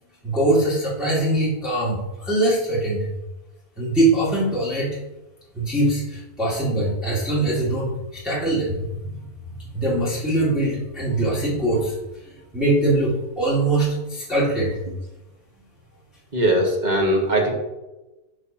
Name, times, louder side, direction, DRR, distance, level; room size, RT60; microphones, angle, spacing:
voice 1, 0.2-3.1 3.8-4.9 5.5-9.1 9.7-12.0 12.5-14.8, right 1 dB, ahead, -9 dB, 2.1 m, -22 dB
voice 2, 16.3-17.5, right 1 dB, 30° right, 0 dB, 1.4 m, -20 dB
12.5 x 4.7 x 2.8 m, 1.0 s
omnidirectional pair, 1.7 m